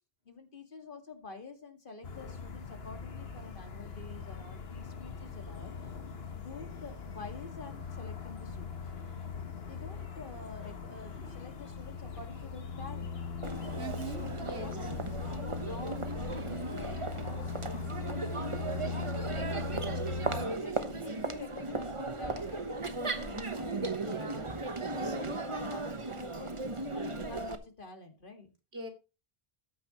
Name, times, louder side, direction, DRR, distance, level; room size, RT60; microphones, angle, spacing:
voice 1, 0.3-5.9 6.3-8.8 9.6-13.7 14.2-17.0 17.4-19.7 20.2-24.3 24.9-28.5, left 3 dB, 55° left, 6 dB, 2.2 m, -48 dB
sound 1, 2.0-20.5, left 5 dB, 75° left, 1.6 m, -40 dB
sound 2, 7.1-22.8, left 1 dB, 35° left, 4.6 m, -59 dB
Crowd, 13.4-27.5, right 3 dB, 30° right, 1.1 m, -37 dB
voice 2, 13.8-14.7 24.0-24.5 25.0-25.2 28.7-28.9, right 2 dB, 85° right, 4 dB, 2.8 m, -41 dB
13.5 x 9.7 x 3.0 m, 0.29 s
omnidirectional pair, 1.0 m